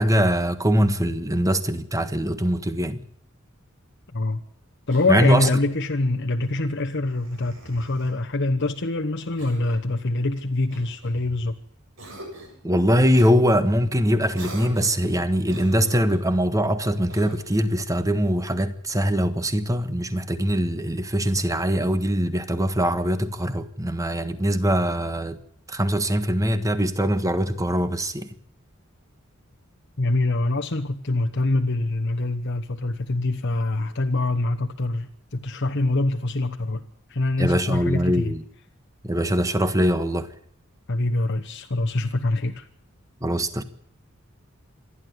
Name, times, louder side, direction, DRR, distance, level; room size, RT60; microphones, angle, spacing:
voice 1, 0.0-3.0 5.1-5.5 12.6-25.4 25.7-28.3 37.4-38.4 39.0-40.3 43.2-43.6, equal, 15° right, 1.5 m, -22 dB
voice 2, 4.1-4.4 4.9-11.6 30.0-36.8 37.1-38.3 40.9-42.7, left 2 dB, 55° left, 1.1 m, -24 dB
Cough, 4.9-5.6 7.0-8.2 9.4-9.9 10.7-11.5 12.0-12.6 13.1-13.3 14.3-15.1 15.5-16.3 17.1-17.7, right 1 dB, 65° right, 7.2 m, -43 dB
26.5 x 11.5 x 9.5 m
head